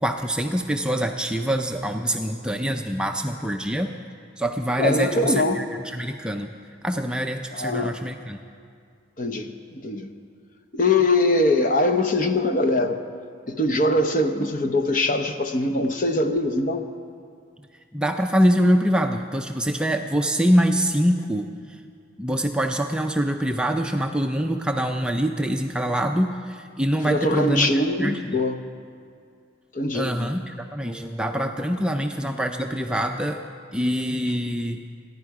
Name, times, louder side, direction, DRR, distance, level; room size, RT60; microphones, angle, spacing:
voice 1, 0.0-3.9 4.4-6.5 6.8-8.4 17.9-21.5 22.2-28.2 29.9-33.5 33.7-34.8, equal, 5° right, 3 dB, 0.5 m, -24 dB
voice 2, 4.8-5.7 7.5-8.0 9.2-10.1 10.7-13.0 13.5-16.8 27.0-28.6 29.7-30.1, left 2 dB, 40° left, 7 dB, 0.9 m, -22 dB
26.5 x 11.0 x 4.8 m, 2.2 s
head